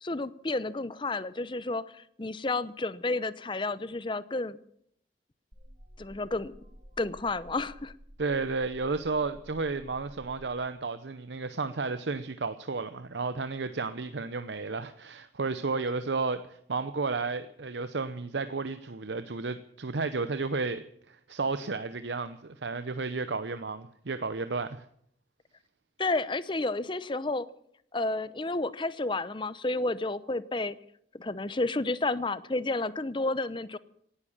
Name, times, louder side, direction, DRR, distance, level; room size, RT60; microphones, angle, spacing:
voice 1, 0.0-4.6 6.0-6.5 7.0-7.9 26.0-27.5 27.9-30.8 31.1-33.8, left 2 dB, 30° left, 16 dB, 0.7 m, -31 dB
sound 1, 5.5-10.5, equal, 35° right, 2.4 m, -51 dB
voice 2, 8.2-24.8, right 4 dB, 85° right, 11 dB, 0.8 m, -32 dB
17.5 x 11.5 x 7.2 m, 0.69 s
head